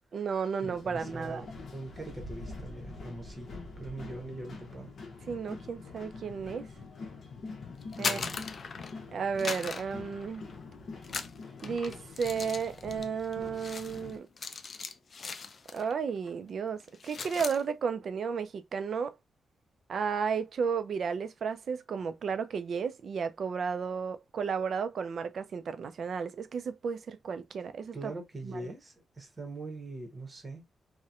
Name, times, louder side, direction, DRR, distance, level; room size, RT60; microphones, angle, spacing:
voice 1, 0.1-1.4 5.3-6.7 8.0-8.2 9.1-10.4 11.6-14.3 15.7-19.1 19.9-28.1 28.4-28.7, right 6 dB, 55° right, 0.3 m, -33 dB
sound 1, 0.6-14.2, left 3 dB, 60° left, 0.7 m, -45 dB
voice 2, 0.8-4.9 8.0-8.4 27.9-30.6, right 2 dB, 25° right, 0.8 m, -42 dB
sound 2, 7.8-9.0 9.4-10.6 11.0-16.0 16.2-16.5 16.8-17.6, left 5 dB, 45° left, 0.3 m, -39 dB
2.8 x 2.1 x 2.3 m
wide cardioid pair, 140°, 0 cm